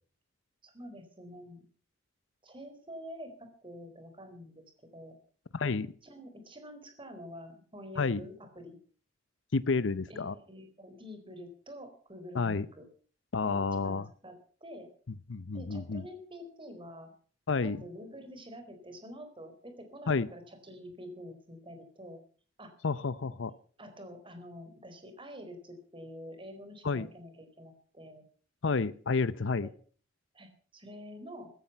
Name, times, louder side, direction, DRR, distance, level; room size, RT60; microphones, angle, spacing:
voice 1, 0.6-1.6 2.4-4.6 4.9-5.2 5.6-5.8 6.0-8.8 10.1-12.9 13.4-14.4 14.6-14.9 15.5-17.1 17.6-22.2 22.6-22.7 23.8-28.2 29.6-29.7 30.3-31.5, equal, 25° right, 7 dB, 4.3 m, -47 dB
voice 2, 5.5-5.9 8.0-8.2 9.5-10.3 12.3-12.7 13.3-14.1 15.3-16.1 17.5-17.8 20.1-20.3 22.8-23.5 26.8-27.1 28.6-29.7, left 4 dB, 75° left, 16 dB, 0.7 m, -30 dB
15.0 x 15.0 x 5.7 m, 0.43 s
head